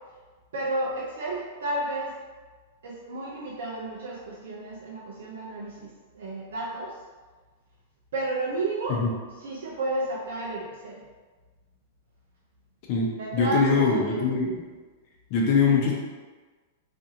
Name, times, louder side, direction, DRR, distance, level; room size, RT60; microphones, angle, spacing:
voice 1, 0.5-2.2 2.8-7.0 8.1-9.0 9.4-11.0 13.2-14.3, right 2 dB, 75° right, -5 dB, 0.4 m, -32 dB
voice 2, 12.9-14.6 15.3-16.0, left 5 dB, 50° left, -2 dB, 0.7 m, -23 dB
2.6 x 2.4 x 2.7 m, 1.4 s
hypercardioid pair, 110°, 0 cm